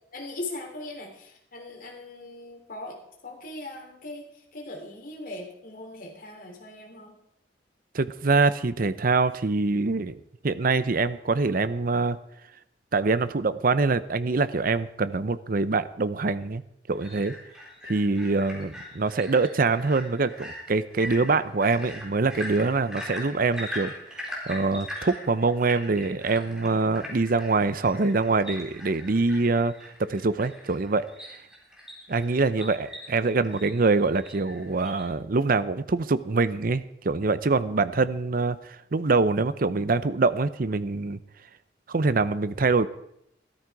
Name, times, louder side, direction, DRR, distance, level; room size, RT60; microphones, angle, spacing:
voice 1, 0.1-3.0 3.2-4.2 4.5-7.1 27.1-27.2 32.6-32.9, left 2 dB, 50° left, 2 dB, 3.1 m, -40 dB
voice 2, 7.9-10.2 10.4-12.2 12.9-16.6 16.9-17.3 17.8-31.4 32.1-38.6 38.9-41.2 41.9-42.9, right 3 dB, 55° right, 14 dB, 0.7 m, -24 dB
sound 1, 16.9-35.0, left 1 dB, 5° right, 3.9 m, -41 dB
14.0 x 13.0 x 4.8 m, 0.75 s
head